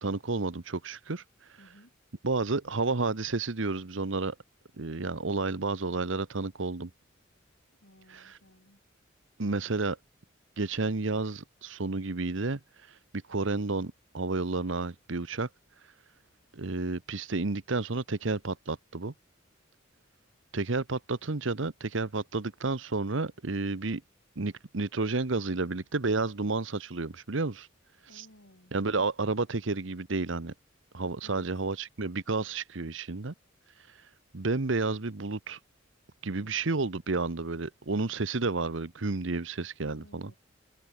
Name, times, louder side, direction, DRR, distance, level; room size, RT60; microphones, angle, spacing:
voice 1, 0.0-1.2 2.2-4.3 4.8-6.9 8.1-8.4 9.4-10.0 10.6-12.6 13.3-15.5 16.5-19.1 20.5-24.0 24.4-27.7 28.1-28.3 28.7-30.5 30.9-33.3 34.3-35.6 36.2-40.3, right 3 dB, 70° right, 1.0 m, -31 dB
voice 2, 1.6-1.9 7.8-8.8 28.0-28.8 31.2-31.5 39.8-40.4, left 1 dB, 70° left, 6.1 m, -57 dB
head